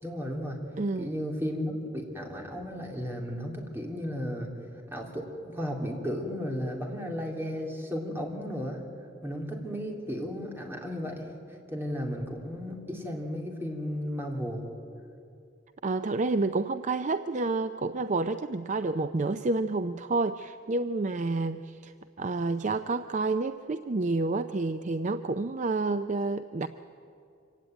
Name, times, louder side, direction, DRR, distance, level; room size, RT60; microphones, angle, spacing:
voice 1, 0.0-0.6 1.0-4.5 4.9-8.8 9.2-11.3 11.7-14.7, equal, 10° right, 0 dB, 3.2 m, -34 dB
voice 2, 0.8-1.1 15.8-26.7, right 3 dB, 40° right, 10 dB, 0.5 m, -29 dB
25.0 x 16.5 x 9.3 m, 2.6 s
head